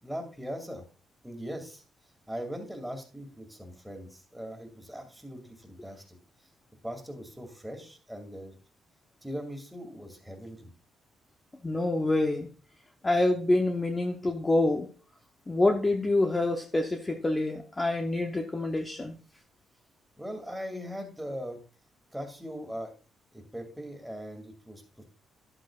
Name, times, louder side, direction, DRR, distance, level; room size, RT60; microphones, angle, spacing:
voice 1, 0.0-0.8 1.2-1.8 2.3-6.0 6.8-8.6 9.2-10.7 20.2-21.6 22.1-22.9 23.3-25.0, equal, 5° right, 3 dB, 2.2 m, -40 dB
voice 2, 11.6-12.5 13.0-14.9 15.5-19.2, left 2 dB, 20° left, 3 dB, 0.8 m, -26 dB
11.5 x 7.9 x 2.4 m, 0.36 s
cardioid pair, 90°, 0 cm